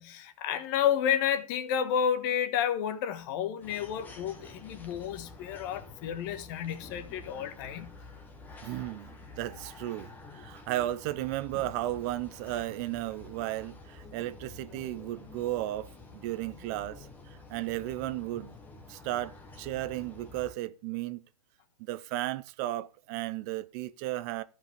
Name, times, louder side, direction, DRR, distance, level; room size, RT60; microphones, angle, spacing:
voice 1, 0.0-7.9, left 9 dB, 35° left, 1.4 m, -31 dB
sound 1, 3.6-20.5, left 3 dB, 10° left, 1.3 m, -49 dB
voice 2, 8.6-17.1 17.5-18.5 18.9-21.2 21.8-24.4, right 15 dB, 25° right, 0.6 m, -34 dB
14.0 x 5.4 x 5.1 m
hypercardioid pair, 145°, 19 cm